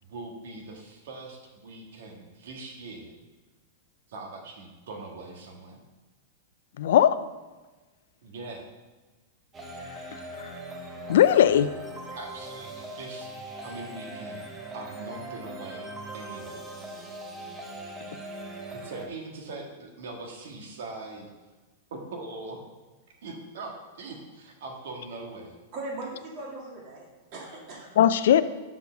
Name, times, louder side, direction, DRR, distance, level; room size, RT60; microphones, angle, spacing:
voice 1, 0.0-3.1 4.1-5.8 8.2-8.6 12.1-13.3 13.6-15.9 16.1-16.6 18.7-21.3 21.9-22.6 23.2-25.6, right 3 dB, 70° right, 2 dB, 1.6 m, -41 dB
voice 2, 6.8-7.2 10.1-10.5 11.1-11.7 28.0-28.4, left 10 dB, 75° left, 14 dB, 0.4 m, -19 dB
sound 1, 9.5-19.1, right 1 dB, 15° right, 0.8 m, -40 dB
voice 3, 25.7-27.1 27.3-28.0, right 2 dB, 40° right, -2 dB, 2.1 m, -39 dB
6.8 x 4.6 x 5.2 m, 1.2 s
supercardioid pair, 150°, 0 cm